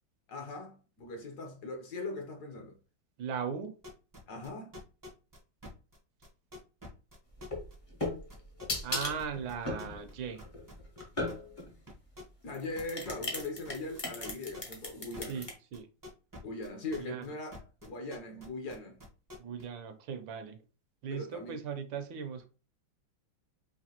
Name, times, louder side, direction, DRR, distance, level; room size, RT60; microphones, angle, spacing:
voice 1, 0.3-2.8 4.3-4.8 12.4-15.5 16.4-19.0 21.1-21.6, left 2 dB, 60° left, 1.3 m, -40 dB
voice 2, 3.2-3.8 8.8-10.4 15.3-15.5 15.7-15.9 17.0-17.3 19.4-20.6 21.0-22.5, right 7 dB, 80° right, 1.5 m, -38 dB
sound 1, 3.8-10.1 10.4-12.5 12.7-17.3 17.5-19.6, left 1 dB, 25° right, 0.4 m, -47 dB
sound 2, 7.4-11.7 12.5-15.5, left 2 dB, 35° left, 0.5 m, -37 dB
5.0 x 2.7 x 2.9 m
omnidirectional pair, 2.1 m